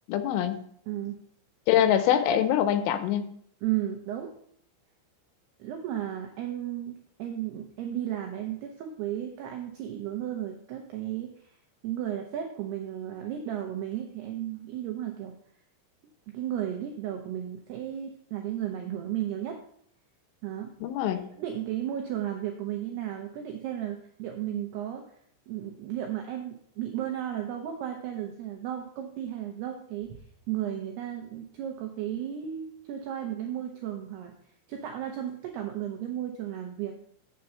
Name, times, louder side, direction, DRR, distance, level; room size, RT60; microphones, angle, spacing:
voice 1, 0.1-0.6 1.7-3.3 20.8-21.2, left 10 dB, 85° left, 10 dB, 3.1 m, -24 dB
voice 2, 0.9-1.2 3.6-4.3 5.6-11.5 11.8-15.3 16.3-19.6 20.4-20.7 21.1-25.0 25.5-34.3 34.7-37.0, right 11 dB, 90° right, 3 dB, 2.3 m, -34 dB
7.7 x 6.9 x 5.6 m, 0.65 s
omnidirectional pair, 5.8 m